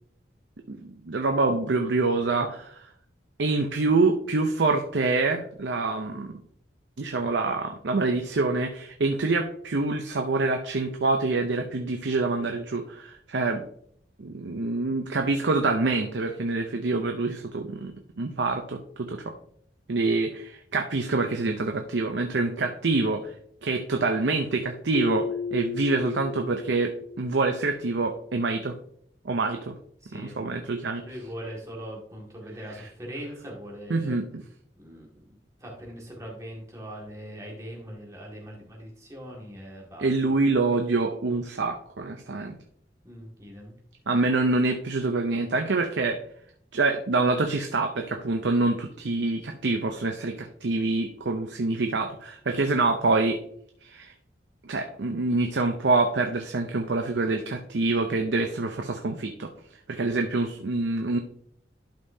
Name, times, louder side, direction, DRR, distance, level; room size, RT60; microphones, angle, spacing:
voice 1, 0.7-2.7 3.4-6.4 7.0-13.6 14.2-19.3 19.9-23.3 23.6-28.8 29.2-29.7 30.1-31.0 33.9-34.4 40.0-42.6 44.1-46.2 46.7-53.4 53.8-54.1 54.6-59.5 59.9-61.2, right 3 dB, 75° right, 4 dB, 0.6 m, -26 dB
voice 2, 2.1-2.5 22.9-23.1 30.0-30.4 31.1-34.2 34.8-40.3 43.0-43.7 60.1-60.3, equal, 15° right, -2 dB, 1.9 m, -41 dB
Keyboard (musical), 24.9-27.7, left 5 dB, 80° left, 0.4 m, -34 dB
11.5 x 5.4 x 2.7 m, 0.66 s
head